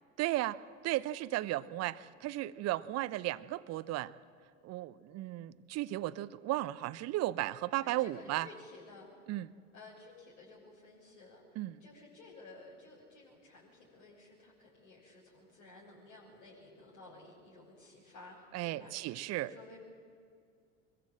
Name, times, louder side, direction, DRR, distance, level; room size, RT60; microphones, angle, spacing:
voice 1, 0.2-4.1 4.6-8.5 9.3-9.5 11.6-11.8 18.5-19.5, right 16 dB, 40° right, 16 dB, 0.8 m, -35 dB
voice 2, 1.4-1.7 7.7-9.1 9.7-19.8, left 2 dB, 60° left, -7 dB, 7.0 m, -55 dB
24.5 x 22.0 x 7.8 m, 2.3 s
figure-of-eight pair, 70°, 38 cm